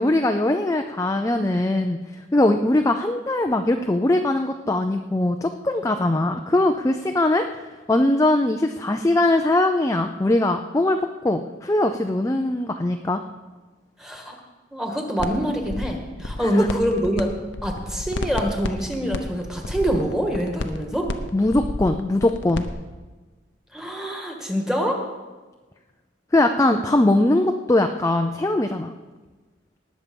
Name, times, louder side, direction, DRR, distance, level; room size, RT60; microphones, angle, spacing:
voice 1, 0.0-2.0 2.3-7.5 7.9-13.2 16.4-16.7 21.3-22.7 26.3-28.9, left 1 dB, 15° left, 5 dB, 0.4 m, -21 dB
voice 2, 14.0-14.3 14.7-17.3 17.6-21.1 23.7-25.0, equal, 5° right, 2 dB, 1.6 m, -25 dB
sound 1, 15.2-15.3 15.6-17.2 17.5-22.7, left 2 dB, 75° left, 0.9 m, -30 dB
19.0 x 7.3 x 5.3 m, 1.3 s
head